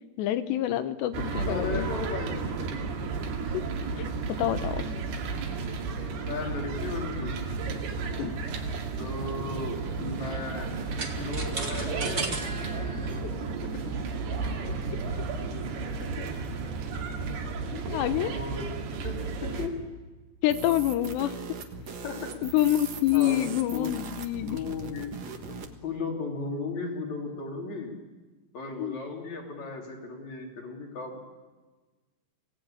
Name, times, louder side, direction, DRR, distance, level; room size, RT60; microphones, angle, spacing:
voice 1, 0.2-1.9 3.5-3.7 4.0-4.9 8.2-8.3 17.7-18.3 20.4-21.6 22.4-24.6 28.8-29.0, left 13 dB, 85° left, 11 dB, 3.1 m, -27 dB
sound 1, 1.1-19.7, right 4 dB, 70° right, 4.1 m, -33 dB
voice 2, 1.5-2.7 6.1-7.3 9.0-10.7 11.2-12.5 13.7-13.8 15.1-15.2 16.0-16.3 18.2-18.7 19.0-19.8 22.0-22.3 23.1-23.9 24.4-27.9 28.5-31.3, left 3 dB, 45° left, 1 dB, 4.5 m, -36 dB
sound 2, 7.7-13.2, right 3 dB, 30° right, 1.3 m, -37 dB
sound 3, 20.5-25.7, right 5 dB, 55° right, 2.1 m, -40 dB
25.0 x 18.0 x 8.9 m, 1.3 s
omnidirectional pair, 4.9 m